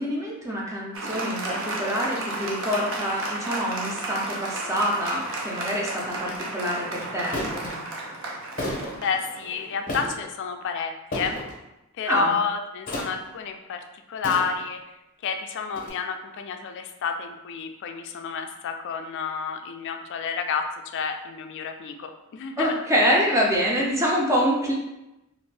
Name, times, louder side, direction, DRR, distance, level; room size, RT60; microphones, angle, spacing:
voice 1, 0.0-7.4 12.0-12.3 22.6-24.7, equal, 15° right, -3 dB, 0.5 m, -26 dB
Applause, 0.9-9.9, right 2 dB, 60° right, 0.5 m, -33 dB
sound 1, 6.2-6.4 7.3-7.7 8.6-9.0 9.9-10.3 11.1-11.6 12.9-13.3 14.2-14.8 15.8-15.9, left 1 dB, 40° left, 0.7 m, -32 dB
voice 2, 9.0-11.4 12.0-14.8 15.2-20.7 20.9-22.8, left 5 dB, 55° left, 6 dB, 0.3 m, -30 dB
2.6 x 2.5 x 3.3 m, 0.95 s
head